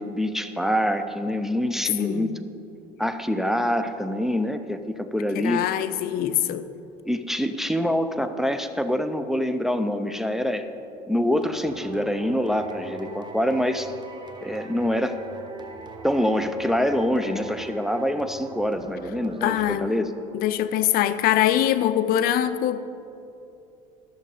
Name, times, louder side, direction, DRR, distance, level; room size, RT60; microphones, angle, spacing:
voice 1, 0.0-2.3 3.0-5.7 7.1-10.7 11.1-13.9 14.4-15.2 16.0-20.1, equal, ahead, 8 dB, 0.5 m, -25 dB
voice 2, 2.0-2.3 5.3-6.7 19.4-19.9 20.3-22.8, left 11 dB, 60° left, 13 dB, 0.5 m, -23 dB
sound 1, 11.4-20.3, right 3 dB, 25° right, 1.0 m, -41 dB
13.5 x 6.5 x 5.0 m, 2.7 s
supercardioid pair, 105°, 17 cm